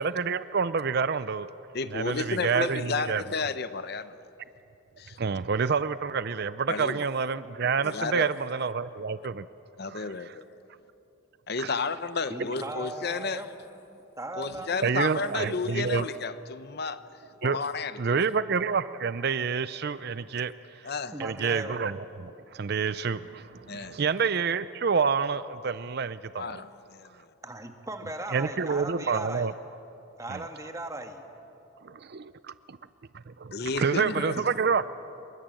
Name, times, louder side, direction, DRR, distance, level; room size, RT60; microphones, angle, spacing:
voice 1, 0.0-1.5 1.9-3.2 5.2-9.5 9.9-10.3 11.6-11.7 14.8-16.1 17.4-17.6 18.0-20.9 21.2-26.6 28.3-29.5 30.3-30.4 31.8-32.8 33.3-34.8, right 5 dB, 50° right, 0.5 m, -28 dB
voice 2, 1.7-4.1 5.0-5.2 6.7-7.0 7.8-8.3 9.8-10.4 11.5-13.5 14.4-18.2 20.8-21.1 23.7-24.0 26.4-27.3 33.5-34.4, left 4 dB, 50° left, 0.8 m, -32 dB
voice 3, 12.3-15.5 21.1-21.8 27.4-29.5 30.2-31.2 34.4-34.5, right 1 dB, 15° right, 1.6 m, -38 dB
27.0 x 23.0 x 7.7 m
head